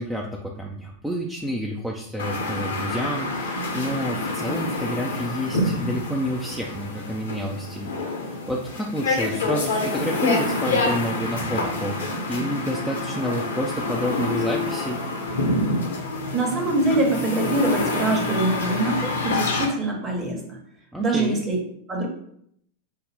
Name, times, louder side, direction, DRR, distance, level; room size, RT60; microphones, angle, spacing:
voice 1, 0.0-7.9 8.2-15.0 20.9-21.4, equal, 5° right, -1 dB, 0.4 m, -29 dB
sound 1, 2.2-19.7, left 2 dB, 70° left, 0.8 m, -27 dB
voice 2, 16.3-20.6 21.0-21.6 21.9-22.1, right 2 dB, 25° right, 1 dB, 1.1 m, -24 dB
5.5 x 2.1 x 3.4 m, 0.70 s
figure-of-eight pair, 90°, 0 cm